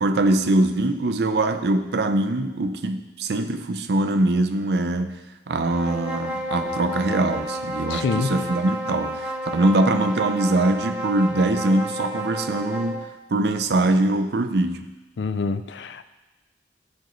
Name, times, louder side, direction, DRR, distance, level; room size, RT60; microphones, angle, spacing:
voice 1, 0.0-14.9, right 2 dB, 65° right, 8 dB, 0.5 m, -23 dB
sound 1, 5.6-13.0, equal, 5° right, 0.7 m, -31 dB
voice 2, 7.9-8.4 15.2-16.0, left 4 dB, 85° left, 11 dB, 0.4 m, -26 dB
12.5 x 5.1 x 3.1 m, 1.1 s
head